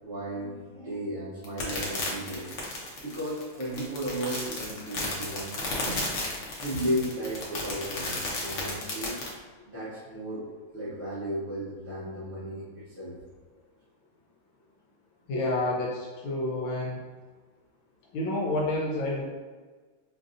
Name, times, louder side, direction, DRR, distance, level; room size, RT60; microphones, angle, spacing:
voice 1, 0.0-2.5 3.0-6.2 6.6-9.2 9.6-10.4 10.7-13.2, equal, 45° right, -12 dB, 0.8 m, -34 dB
sound 1, 1.4-9.3, left 2 dB, 60° left, 0.8 m, -33 dB
voice 2, 15.3-17.0 18.1-19.2, left 2 dB, 80° left, -2 dB, 1.4 m, -29 dB
5.2 x 2.6 x 2.5 m, 1.4 s
omnidirectional pair, 2.2 m